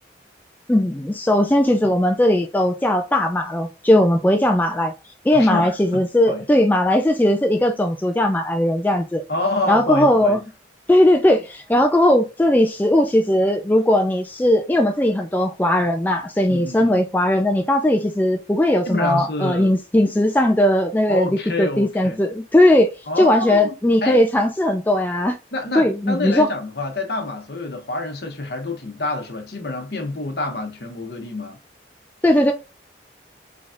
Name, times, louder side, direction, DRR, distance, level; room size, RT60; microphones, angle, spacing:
voice 1, 0.7-4.9 5.2-9.2 9.7-10.4 10.9-21.3 21.6-22.9 23.2-25.4 25.8-26.5 32.2-32.5, left 1 dB, 10° left, 0.3 m, -18 dB
voice 2, 5.3-6.4 9.3-10.4 16.5-17.0 18.8-19.7 21.1-22.2 23.1-23.7 24.0-24.2 25.5-31.6, left 2 dB, 60° left, 0.9 m, -27 dB
3.9 x 3.4 x 2.5 m
head